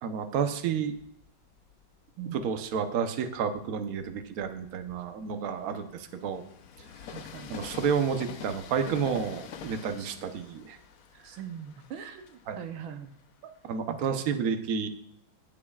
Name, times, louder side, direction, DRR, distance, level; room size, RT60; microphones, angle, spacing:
voice 1, 0.0-0.9 2.3-6.4 7.5-10.8 12.5-12.6 13.6-14.9, right 6 dB, 55° right, 7 dB, 1.0 m, -30 dB
Train, 0.9-2.6 3.2-13.8, left 7 dB, 70° left, 0.8 m, -47 dB
voice 2, 2.2-2.5 7.1-7.5 10.0-10.1 11.2-13.1 13.9-14.2, right 8 dB, 75° right, 7 dB, 1.5 m, -41 dB
16.5 x 7.5 x 2.4 m, 0.72 s
omnidirectional pair, 2.3 m